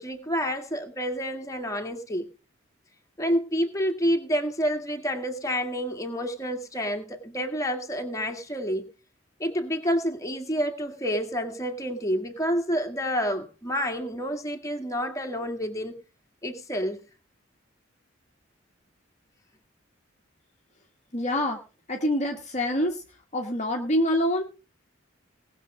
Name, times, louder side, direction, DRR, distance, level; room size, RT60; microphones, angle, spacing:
voice 1, 0.0-2.3 3.2-8.9 9.4-16.0 16.4-17.0, equal, 15° left, 2.0 m, -29 dB
voice 2, 21.1-21.6 21.9-23.0 23.3-24.4, left 1 dB, 35° left, 1.4 m, -25 dB
19.0 x 6.8 x 5.0 m
head